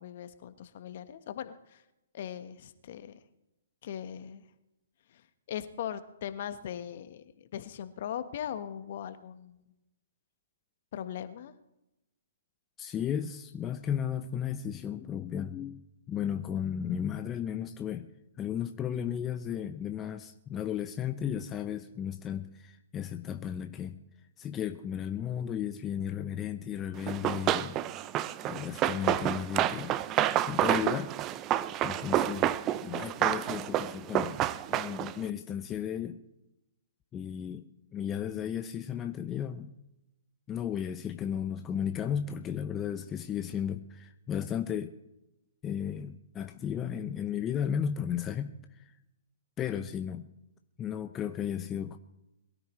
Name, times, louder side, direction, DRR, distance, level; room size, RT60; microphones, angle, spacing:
voice 1, 0.0-1.8 2.1-3.2 3.8-4.4 5.1-9.6 10.9-11.5, left 9 dB, 55° left, 1.2 m, -40 dB
voice 2, 12.8-18.1 18.4-24.0 24.4-27.8 28.4-30.0 30.5-31.1 31.8-32.5 32.8-34.4 34.7-36.2 37.1-37.6 37.9-39.7 40.5-44.9 45.6-48.9 49.6-50.3 50.8-52.0, left 9 dB, 20° left, 0.7 m, -34 dB
Run, 27.1-35.2, right 12 dB, 25° right, 0.6 m, -29 dB
22.5 x 13.0 x 3.2 m
figure-of-eight pair, 125°, 0 cm